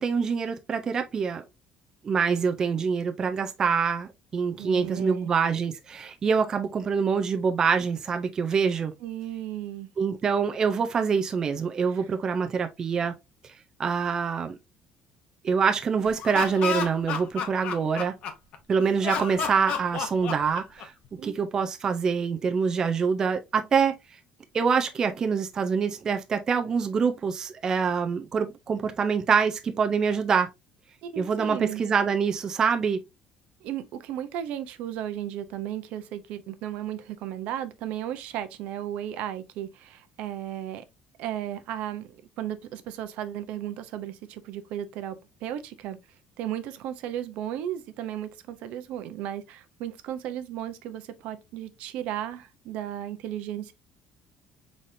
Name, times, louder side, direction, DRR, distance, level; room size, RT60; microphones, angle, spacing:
voice 1, 0.0-1.4 2.0-8.9 10.0-13.1 13.8-14.6 15.4-18.1 18.7-20.9 21.2-23.9 24.5-30.5 31.2-33.0, right 6 dB, 25° right, 0.4 m, -25 dB
voice 2, 4.6-5.3 9.0-9.9 11.9-12.1 21.2-21.3 31.0-31.8 33.6-40.8 41.2-45.2 45.4-46.0 46.4-53.7, right 11 dB, 65° right, 0.7 m, -35 dB
Laughter, 16.1-18.6 19.0-21.1, left 6 dB, 50° left, 0.9 m, -31 dB
4.9 x 4.1 x 2.6 m
cardioid pair, 165°, 2 cm